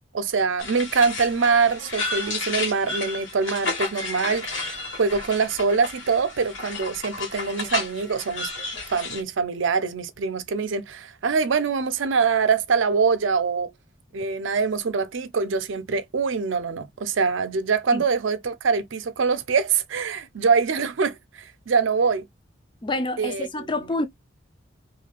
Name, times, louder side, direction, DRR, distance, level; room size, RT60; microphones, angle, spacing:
voice 1, 0.1-8.5 8.9-13.7 14.1-22.2 23.2-23.7, right 5 dB, 75° right, 0.5 m, -24 dB
sound 1, 0.6-9.2, left 3 dB, 75° left, 1.4 m, -32 dB
voice 2, 22.8-24.1, left 2 dB, 25° left, 0.5 m, -27 dB
2.9 x 2.7 x 2.4 m
head